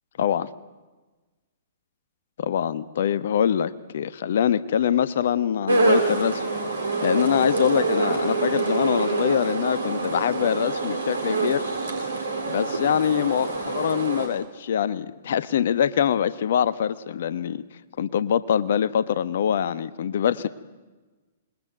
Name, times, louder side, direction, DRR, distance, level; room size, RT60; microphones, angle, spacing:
voice 1, 0.2-0.5 2.4-6.4 7.0-11.6 12.5-17.6 18.0-20.5, left 9 dB, 60° left, 15 dB, 1.3 m, -24 dB
sound 1, 5.7-14.3, right 3 dB, 80° right, 7.3 m, -26 dB
27.0 x 22.0 x 9.2 m, 1.2 s
figure-of-eight pair, 115°, 0 cm